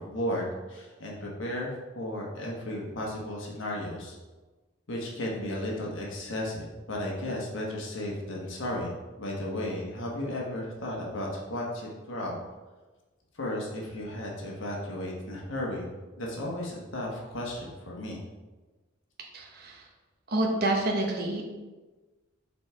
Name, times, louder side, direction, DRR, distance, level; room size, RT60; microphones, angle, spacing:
voice 1, 0.0-4.2 4.9-8.9 9.2-12.4 13.3-15.9 16.2-18.2, left 1 dB, 70° left, -2 dB, 1.2 m, -34 dB
voice 2, 19.3-19.8 20.3-21.4, right 1 dB, 45° right, 0 dB, 1.0 m, -28 dB
5.4 x 4.2 x 4.6 m, 1.2 s
head